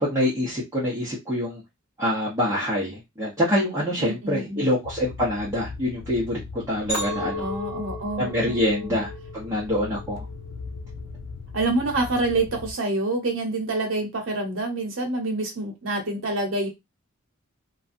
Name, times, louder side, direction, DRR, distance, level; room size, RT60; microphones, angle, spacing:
voice 1, 0.0-1.6 2.0-7.4 8.2-10.2, left 1 dB, 15° right, -9 dB, 0.8 m, -25 dB
voice 2, 4.0-4.7 7.4-9.0 11.5-16.7, right 2 dB, 70° right, 2 dB, 0.9 m, -27 dB
sound 1, 4.8-12.7, left 4 dB, 60° left, 0.3 m, -39 dB
Chink clink, 6.9-11.2 11.7-12.1, left 1 dB, 35° left, 1.4 m, -36 dB
2.6 x 2.3 x 2.5 m, 0.21 s
head